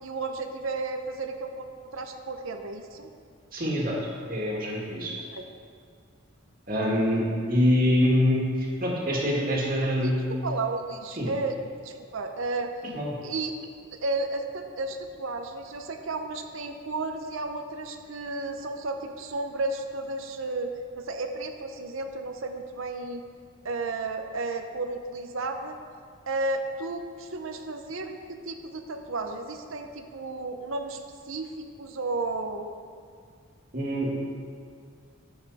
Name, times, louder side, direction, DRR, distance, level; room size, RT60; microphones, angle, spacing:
voice 1, 0.0-3.1 5.3-5.4 9.8-10.1 10.4-12.7 13.2-13.6 13.9-23.2 23.6-25.8 26.3-31.0 31.3-32.7, right 3 dB, 80° right, 5 dB, 0.7 m, -33 dB
voice 2, 3.5-4.0 4.3-5.1 6.7-10.3 11.2-11.3 12.9-13.1 33.7-34.1, equal, 45° right, -3 dB, 2.0 m, -25 dB
13.0 x 6.8 x 4.2 m, 2.2 s
head